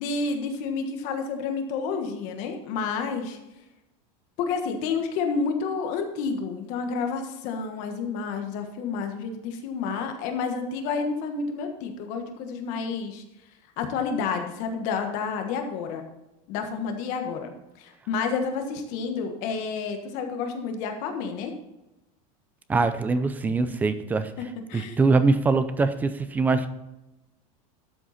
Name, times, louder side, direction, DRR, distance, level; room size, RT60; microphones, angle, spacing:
voice 1, 0.0-3.4 4.4-13.2 13.8-16.1 16.5-17.5 17.8-21.5 23.4-23.5 24.7-25.0, left 5 dB, 45° left, 5 dB, 1.4 m, -30 dB
voice 2, 22.7-24.3 24.7-26.7, right 3 dB, 10° right, 12 dB, 0.3 m, -23 dB
12.5 x 7.7 x 4.1 m, 0.95 s
supercardioid pair, 175°, 19 cm